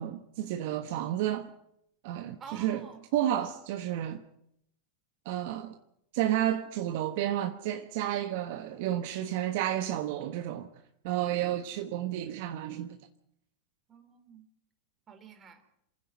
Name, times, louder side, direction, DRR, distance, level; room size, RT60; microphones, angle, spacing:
voice 1, 0.0-1.5 2.0-2.8 3.1-4.2 5.2-5.8 6.1-10.7 11.0-13.0, right 12 dB, 60° right, 1.3 m, -31 dB
voice 2, 2.4-3.1 13.9-14.5 15.1-15.6, right 6 dB, 30° right, 3.5 m, -50 dB
28.0 x 9.9 x 9.4 m
hypercardioid pair, 100°, 0 cm